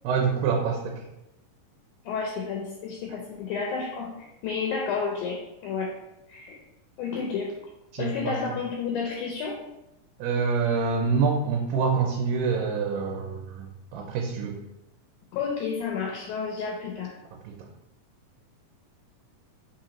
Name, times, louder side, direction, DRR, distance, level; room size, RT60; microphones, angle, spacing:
voice 1, 0.0-1.0 7.9-8.4 10.2-13.7 13.9-14.6 17.5-17.6, right 5 dB, 85° right, 1 dB, 2.2 m, -26 dB
voice 2, 2.1-5.9 6.3-6.6 7.0-7.5 8.0-9.6 15.3-17.2, left 5 dB, 80° left, -1 dB, 1.9 m, -31 dB
4.9 x 3.1 x 2.8 m, 0.93 s
omnidirectional pair, 3.8 m